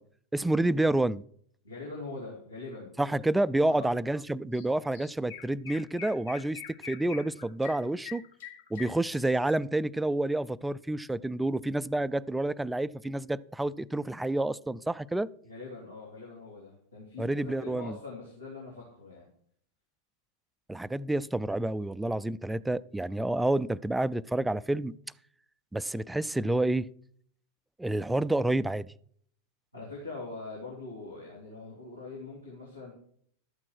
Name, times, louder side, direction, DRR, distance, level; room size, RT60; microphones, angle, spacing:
voice 1, 0.3-1.2 3.0-8.2 8.7-15.3 17.2-18.0 20.7-24.9 25.7-26.9 27.8-28.9, right 2 dB, 5° right, 0.3 m, -29 dB
voice 2, 1.6-2.9 3.6-3.9 15.4-19.3 29.7-32.9, left 3 dB, 85° left, 3.3 m, -42 dB
Chirp tweet, 4.5-4.7 4.9-9.5, left 9 dB, 60° left, 1.4 m, -44 dB
12.5 x 8.4 x 4.6 m
figure-of-eight pair, 90°, 0 cm